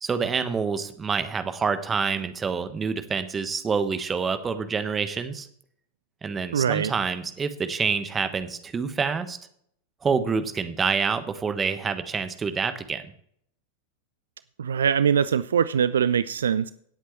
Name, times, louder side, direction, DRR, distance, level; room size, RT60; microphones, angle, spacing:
voice 1, 0.0-5.5 6.2-9.4 10.0-13.0, right 5 dB, 20° right, 10 dB, 1.3 m, -27 dB
voice 2, 6.5-6.9 14.6-16.7, right 7 dB, 65° right, 16 dB, 0.4 m, -22 dB
18.0 x 8.1 x 3.2 m, 0.65 s
figure-of-eight pair, 90°, 0 cm